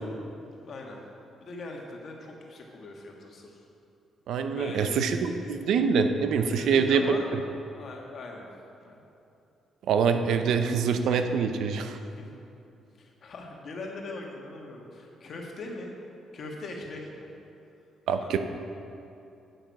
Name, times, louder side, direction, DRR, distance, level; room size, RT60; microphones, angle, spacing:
voice 1, 0.4-1.0 1.4-3.5 4.5-5.2 6.4-7.2 7.7-8.5 8.8-9.0 12.1-12.3 13.0-15.9 16.3-17.3 18.2-18.4, left 2 dB, 55° left, 0 dB, 1.6 m, -41 dB
voice 2, 4.3-7.2 9.9-12.0 18.1-18.4, right 6 dB, 75° right, 8 dB, 0.6 m, -25 dB
8.8 x 8.2 x 4.7 m, 2.7 s
cardioid pair, 90°, 0 cm